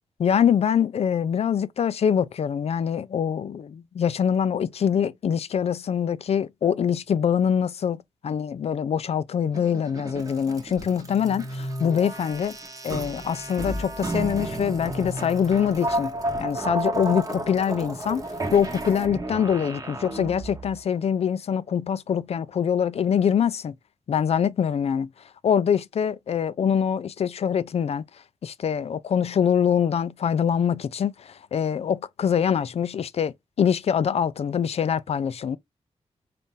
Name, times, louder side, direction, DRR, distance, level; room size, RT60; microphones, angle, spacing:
voice 1, 0.2-12.6 12.8-16.1 16.4-18.2 18.5-23.7 24.1-25.1 25.4-28.0 28.4-35.6, left 8 dB, 60° left, 0.4 m, -24 dB
sound 1, 9.5-20.8, right 1 dB, 30° right, 0.9 m, -32 dB
4.0 x 2.5 x 3.7 m
wide cardioid pair, 85°, 12 cm